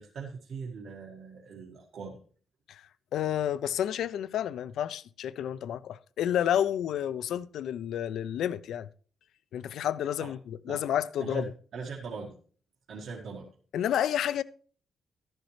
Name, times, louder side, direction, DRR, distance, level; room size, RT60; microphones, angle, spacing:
voice 1, 0.0-2.2 10.2-10.3 10.7-10.8 11.2-12.4 12.9-13.5, right 5 dB, 65° right, 1.6 m, -40 dB
voice 2, 3.1-8.9 9.5-11.5 13.7-14.4, left 10 dB, 85° left, 0.5 m, -30 dB
13.0 x 10.5 x 3.2 m
cardioid pair, 130°, 0 cm